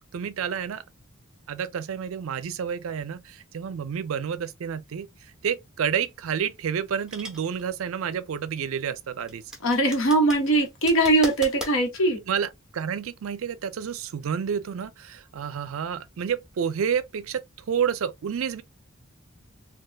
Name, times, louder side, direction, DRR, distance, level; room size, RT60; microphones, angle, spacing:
voice 1, 0.1-0.8 1.5-5.1 5.4-9.4 12.3-18.6, right 7 dB, 70° right, 0.4 m, -29 dB
sound 1, 6.1-11.8, right 1 dB, 5° right, 0.8 m, -40 dB
voice 2, 9.6-12.2, right 2 dB, 70° left, 1.1 m, -21 dB
3.3 x 2.3 x 2.3 m
head